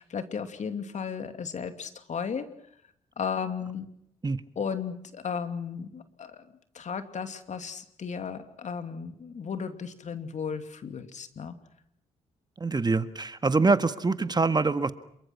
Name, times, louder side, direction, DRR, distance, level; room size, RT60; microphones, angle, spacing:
voice 1, 0.0-2.5 3.2-3.9 4.6-6.5 6.7-11.6, left 6 dB, 55° left, 8 dB, 2.7 m, -35 dB
voice 2, 12.6-14.9, right 3 dB, 30° right, 11 dB, 1.7 m, -24 dB
28.0 x 23.5 x 6.0 m, 0.71 s
hypercardioid pair, 50°, 15 cm